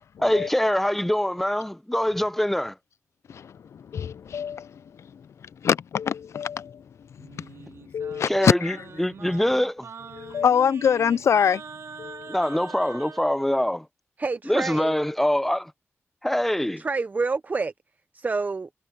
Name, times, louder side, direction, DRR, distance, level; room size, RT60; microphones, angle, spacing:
voice 1, 0.2-2.7 8.3-9.9 12.3-13.8 14.5-15.7 16.2-16.8, left 1 dB, 5° left, 0.8 m, -24 dB
voice 2, 3.3-6.8 7.1-8.8 10.1-11.6 12.0-12.4, left 7 dB, 75° left, 0.4 m, -25 dB
Singing, 7.2-13.2, right 5 dB, 70° right, 2.8 m, -43 dB
voice 3, 14.2-14.9 16.8-17.7 18.1-18.7, right 4 dB, 35° right, 0.6 m, -27 dB
wide cardioid pair, 90°, 5 cm